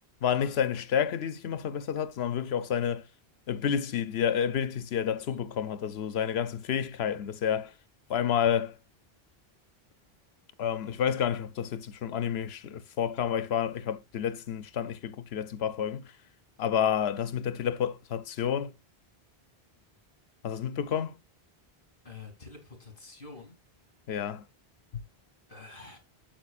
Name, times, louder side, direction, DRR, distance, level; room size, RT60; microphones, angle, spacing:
voice 1, 0.2-3.0 3.5-7.7 8.1-8.7 10.6-16.1 16.6-18.7 20.4-21.2 24.1-24.4, left 8 dB, 85° left, 1.0 m, -29 dB
voice 2, 22.0-23.6 25.5-26.0, left 4 dB, 55° left, 3.1 m, -47 dB
9.0 x 7.5 x 2.4 m
omnidirectional pair, 1.0 m